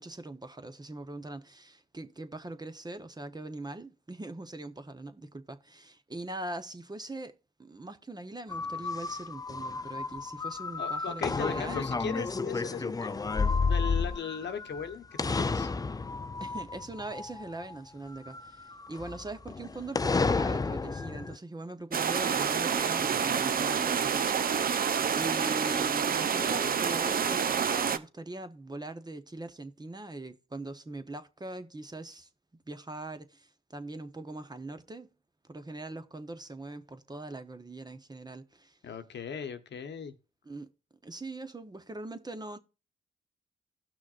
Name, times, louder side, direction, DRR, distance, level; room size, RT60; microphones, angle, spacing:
voice 1, 0.0-7.3 7.6-11.9 16.4-24.3 25.1-32.3 32.7-35.1 35.5-38.8 40.5-40.7 41.0-42.6, right 2 dB, 20° right, 0.9 m, -41 dB
sound 1, 8.5-14.9 15.2-17.7 18.2-21.4, left 4 dB, 20° left, 0.4 m, -31 dB
voice 2, 10.8-15.7 38.8-40.1, left 7 dB, 55° left, 1.0 m, -38 dB
sound 2, 21.9-28.0, right 7 dB, 45° right, 0.6 m, -28 dB
16.5 x 6.1 x 2.5 m
supercardioid pair, 60°, 21 cm